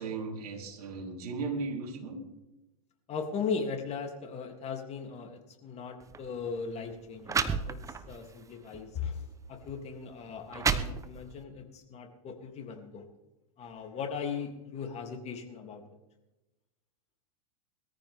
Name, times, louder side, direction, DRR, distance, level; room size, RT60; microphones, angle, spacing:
voice 1, 0.0-2.2, right 4 dB, 75° right, 1 dB, 4.2 m, -36 dB
voice 2, 3.1-7.8 8.1-13.1 13.6-15.8, left 5 dB, 35° left, 3 dB, 3.1 m, -38 dB
sound 1, 6.0-6.2 6.9-7.0 7.3-8.2 8.7-8.9 9.7-9.8 10.3-11.4, right 5 dB, 15° right, 1.0 m, -31 dB
20.5 x 14.0 x 3.7 m, 0.97 s
hypercardioid pair, 110°, 20 cm